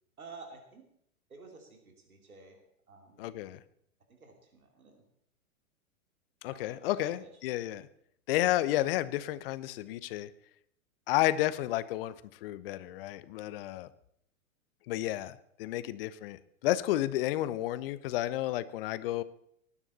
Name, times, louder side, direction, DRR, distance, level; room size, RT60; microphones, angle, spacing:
voice 1, 0.2-0.9 1.3-2.6 2.9-3.3 4.1-5.0 6.5-7.3, right 4 dB, 80° right, 3 dB, 2.8 m, -51 dB
voice 2, 3.2-3.6 6.4-7.9 8.3-10.3 11.1-12.1 12.4-13.9 14.9-19.2, left 15 dB, 40° left, 16 dB, 0.8 m, -31 dB
19.5 x 9.9 x 4.2 m, 0.71 s
figure-of-eight pair, 110°, 42 cm